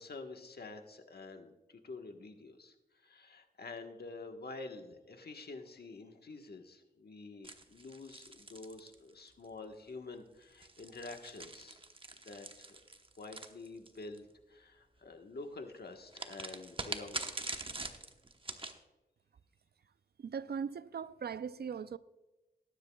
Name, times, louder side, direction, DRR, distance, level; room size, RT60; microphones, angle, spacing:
voice 1, 0.0-11.8 12.2-12.7 13.2-17.4, left 3 dB, 65° left, 1.3 m, -48 dB
sound 1, 7.4-9.5 10.4-14.2 16.1-18.8, right 2 dB, 30° right, 1.0 m, -44 dB
voice 2, 20.2-22.0, right 7 dB, 65° right, 0.4 m, -39 dB
19.0 x 10.5 x 2.3 m
cardioid pair, 60°, 18 cm